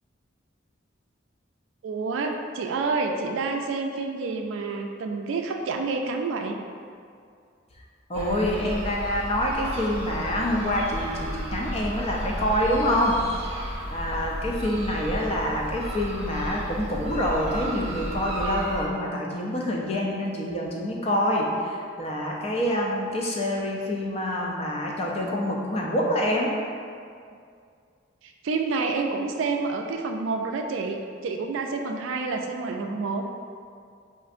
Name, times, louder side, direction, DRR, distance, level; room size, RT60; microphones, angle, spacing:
voice 1, 1.8-6.6 28.2-33.3, right 4 dB, 75° right, 3 dB, 0.3 m, -28 dB
voice 2, 8.1-13.2 13.9-26.6, equal, 30° left, -2 dB, 0.4 m, -26 dB
sound 1, 8.1-18.8, equal, 30° right, 0.7 m, -33 dB
5.1 x 2.5 x 2.5 m, 2.3 s
head